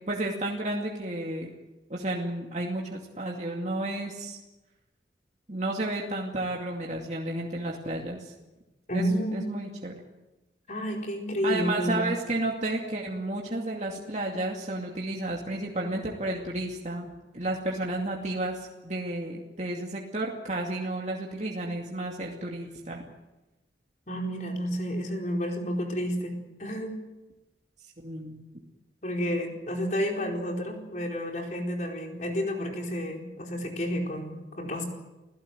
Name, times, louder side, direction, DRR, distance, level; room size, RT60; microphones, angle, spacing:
voice 1, 0.1-1.5 1.9-4.4 5.5-8.3 8.9-9.0 9.3-9.9 11.4-17.1 17.3-23.0 28.0-28.4, right 2 dB, 40° right, -1 dB, 2.4 m, -32 dB
voice 2, 8.9-9.4 10.7-12.1 24.1-27.0 29.0-34.8, equal, 40° left, 1 dB, 4.6 m, -30 dB
28.0 x 17.0 x 7.8 m, 1.0 s
head